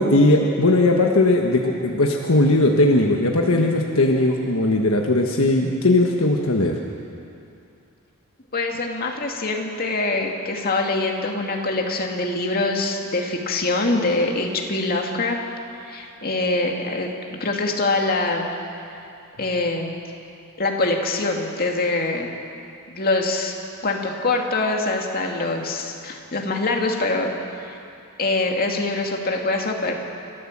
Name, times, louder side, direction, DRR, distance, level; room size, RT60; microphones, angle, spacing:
voice 1, 0.0-6.8, left 2 dB, 65° left, 1 dB, 1.4 m, -18 dB
voice 2, 8.5-15.4 15.8-17.1 17.4-18.5 19.4-19.9 20.6-22.3 22.9-23.5 23.8-27.3 27.6-27.8 28.2-29.9, left 2 dB, 45° left, 1 dB, 2.3 m, -24 dB
29.0 x 14.0 x 7.4 m, 2.6 s
head